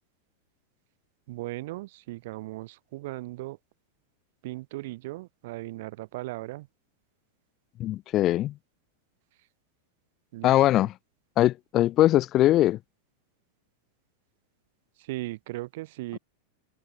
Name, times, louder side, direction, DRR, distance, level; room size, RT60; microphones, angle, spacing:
voice 1, 1.3-3.6 4.4-6.7 10.3-10.9 15.0-16.2, right 19 dB, 50° right, 1.4 m, -37 dB
voice 2, 7.8-8.6 10.4-10.9 11.4-12.8 16.1-16.2, left 14 dB, 35° left, 1.4 m, -21 dB
open air
figure-of-eight pair, 90°, 0 cm